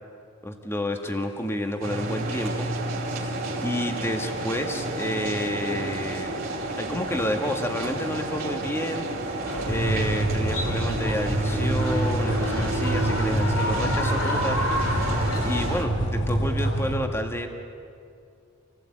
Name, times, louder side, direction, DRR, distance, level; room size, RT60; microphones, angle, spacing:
voice 1, 0.4-2.7 3.2-3.3 3.6-6.4 6.8-9.1 9.6-15.1 15.4-17.5, left 1 dB, 10° left, 4 dB, 1.8 m, -30 dB
sound 1, 1.8-15.8, right 2 dB, 45° right, 3.2 m, -31 dB
sound 2, 2.6-16.9, right 1 dB, 55° left, 5.2 m, -29 dB
sound 3, 9.4-15.9, left 1 dB, 80° left, 3.2 m, -32 dB
28.0 x 16.5 x 8.8 m, 2.4 s
head